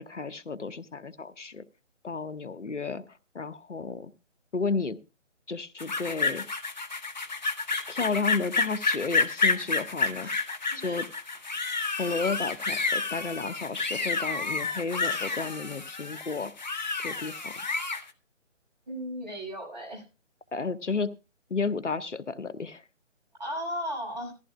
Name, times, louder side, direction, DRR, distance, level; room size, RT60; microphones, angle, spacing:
voice 1, 0.0-1.6 2.0-4.1 4.5-5.0 5.5-6.4 7.9-10.3 10.8-11.1 12.0-16.5 17.0-17.6 20.5-21.1 21.5-22.8, left 4 dB, 70° left, 16 dB, 0.9 m, -32 dB
sound 1, 5.8-18.0, left 4 dB, 35° left, 1.0 m, -30 dB
voice 2, 10.7-11.0 18.9-20.0 23.4-24.3, equal, 35° right, 0 dB, 6.7 m, -36 dB
17.5 x 14.5 x 2.3 m, 0.30 s
figure-of-eight pair, 150°, 38 cm